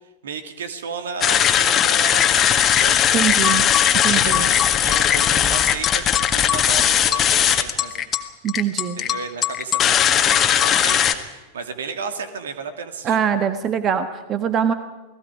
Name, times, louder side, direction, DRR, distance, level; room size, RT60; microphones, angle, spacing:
voice 1, 0.2-3.0 4.0-6.0 6.3-8.1 9.0-13.2, right 5 dB, 65° right, 9 dB, 2.2 m, -33 dB
sound 1, 1.2-11.1, left 9 dB, 25° left, 1.7 m, -18 dB
voice 2, 3.1-3.7 4.0-4.5 8.4-9.0 13.0-14.7, right 8 dB, 30° right, 11 dB, 1.3 m, -22 dB
29.0 x 19.5 x 5.0 m, 1.1 s
figure-of-eight pair, 90°, 0 cm